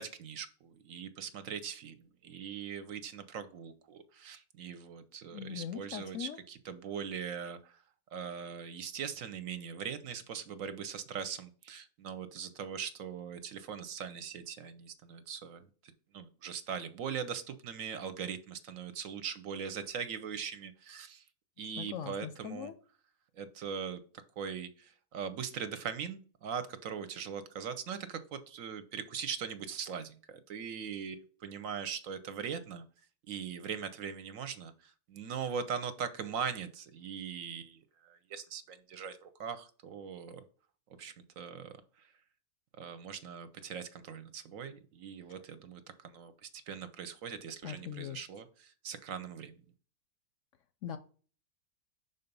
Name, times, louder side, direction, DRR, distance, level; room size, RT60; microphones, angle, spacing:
voice 1, 0.0-7.8 8.1-15.7 16.1-21.2 21.6-22.7 23.4-24.0 24.4-32.8 33.3-40.4 41.0-42.1 42.8-49.6, right 7 dB, 65° right, 11 dB, 0.9 m, -41 dB
voice 2, 5.3-6.4 21.8-22.8 47.6-48.2 50.8-51.0, left 9 dB, 70° left, 10 dB, 0.8 m, -40 dB
5.5 x 4.0 x 5.2 m, 0.41 s
omnidirectional pair, 1.6 m